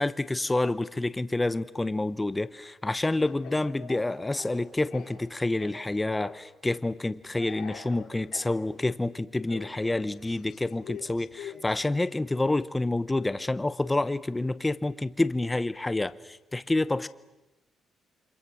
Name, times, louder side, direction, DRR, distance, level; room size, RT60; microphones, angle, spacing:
voice 1, 0.0-17.1, left 2 dB, 10° left, 14 dB, 0.8 m, -28 dB
Speech / Cough, 3.0-5.3 5.6-6.4 7.3-8.5 9.5-11.8, left 7 dB, 75° left, 6.3 m, -45 dB
29.0 x 26.0 x 6.2 m, 1.0 s
cardioid pair, 135°, 0 cm